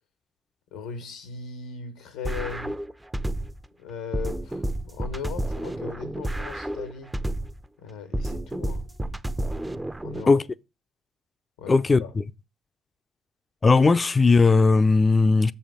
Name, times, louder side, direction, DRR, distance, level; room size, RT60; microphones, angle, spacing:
voice 1, 0.7-2.8 3.8-7.1 7.8-8.9 10.0-10.4 11.6-11.7 12.0-12.1, left 5 dB, 80° left, 0.9 m, -38 dB
sound 1, 2.2-3.7 4.1-7.7 8.1-10.2, right 1 dB, 15° right, 0.6 m, -30 dB
voice 2, 11.7-12.2 13.6-15.5, left 4 dB, 30° left, 0.5 m, -18 dB
7.0 x 5.5 x 4.9 m
hypercardioid pair, 55°, 0 cm